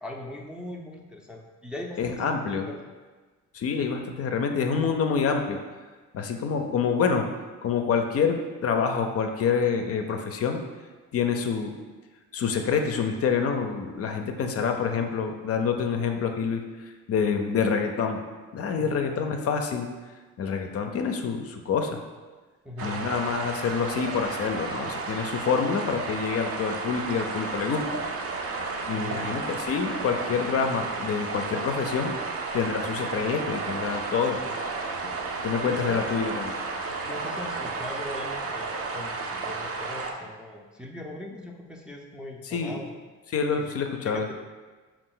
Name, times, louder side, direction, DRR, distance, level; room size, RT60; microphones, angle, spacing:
voice 1, 0.0-2.8 18.8-19.0 22.6-23.0 28.9-29.2 35.6-36.0 37.0-42.9 43.6-44.3, left 1 dB, 5° right, -1 dB, 0.4 m, -40 dB
voice 2, 2.0-2.7 3.5-5.6 6.1-7.3 7.6-10.6 11.1-11.7 12.3-18.2 18.5-19.9 20.4-22.0 22.8-27.8 28.9-32.1 32.5-34.4 35.4-36.6 42.5-42.8 43.3-44.3, left 6 dB, 50° left, 5 dB, 0.5 m, -27 dB
sound 1, 22.8-40.1, right 3 dB, 50° right, 0.6 m, -32 dB
5.0 x 2.4 x 3.8 m, 1.3 s
cardioid pair, 90°, 30 cm